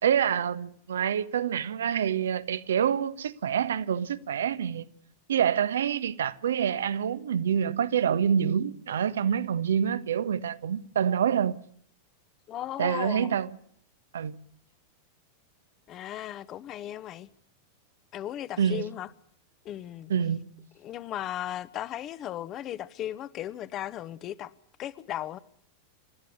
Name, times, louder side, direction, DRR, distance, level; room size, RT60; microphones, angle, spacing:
voice 1, 0.0-4.9 5.3-11.6 12.8-13.6 14.1-14.4 18.6-18.9 20.1-20.4, right 8 dB, 65° right, 1.3 m, -27 dB
voice 2, 12.5-13.3 15.9-17.3 18.1-19.1 19.6-20.1 20.8-24.5 24.8-25.4, left 12 dB, 35° left, 1.3 m, -36 dB
28.0 x 14.0 x 9.6 m
figure-of-eight pair, 90°, 0 cm